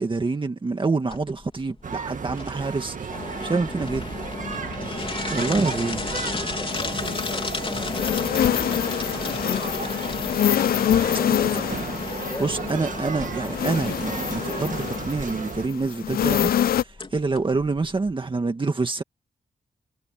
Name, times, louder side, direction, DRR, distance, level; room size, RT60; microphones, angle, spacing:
voice 1, 0.0-4.1 5.3-6.0 12.4-19.0, right 3 dB, 35° right, 1.8 m, -27 dB
sound 1, 1.1-18.1, left 3 dB, 35° left, 4.2 m, -34 dB
sound 2, 1.8-15.7, right 6 dB, 60° right, 1.8 m, -34 dB
voice 2, 4.8-10.3 10.9-11.7 12.2-12.5, left 2 dB, 20° left, 7.8 m, -41 dB
sound 3, 6.7-16.8, left 10 dB, 90° left, 0.4 m, -26 dB
wide cardioid pair, 105°, 15 cm